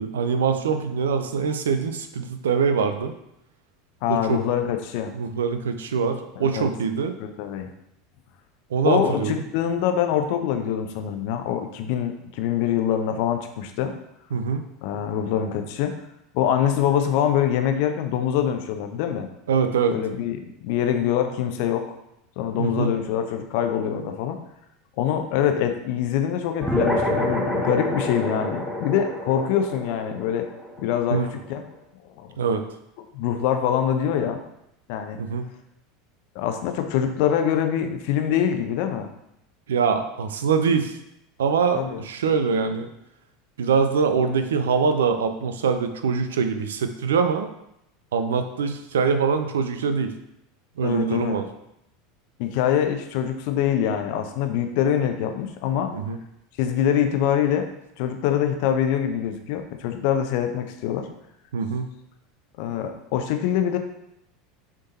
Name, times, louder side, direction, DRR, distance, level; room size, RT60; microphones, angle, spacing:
voice 1, 0.0-3.1 4.1-4.4 5.1-7.1 8.7-9.3 14.3-14.7 19.5-20.0 22.6-22.9 31.1-31.3 32.4-32.6 35.2-35.4 39.7-40.9 41.4-42.9 43.6-47.5 48.1-50.1 50.8-51.5 55.9-56.2 61.5-61.9, right 5 dB, 70° right, 8 dB, 0.5 m, -23 dB
voice 2, 4.0-5.1 6.4-6.7 7.2-7.7 8.9-13.9 14.8-15.9 16.3-19.3 19.9-21.9 22.4-24.4 25.0-30.5 30.8-31.6 32.2-32.4 33.1-34.4 34.9-35.2 36.3-39.1 41.7-42.0 50.8-51.4 52.4-55.9 56.6-57.7 58.0-61.1 62.6-63.8, left 9 dB, 55° left, 6 dB, 0.7 m, -24 dB
sound 1, 26.6-31.4, left 1 dB, 5° right, 1.2 m, -27 dB
6.5 x 3.7 x 4.1 m, 0.82 s
figure-of-eight pair, 80°, 0 cm